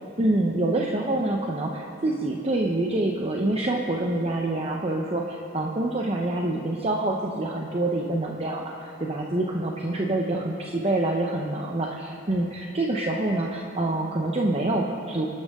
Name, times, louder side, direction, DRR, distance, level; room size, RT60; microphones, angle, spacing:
voice 1, 0.2-15.3, right 2 dB, 30° right, 0 dB, 1.0 m, -26 dB
26.5 x 12.0 x 3.8 m, 2.6 s
head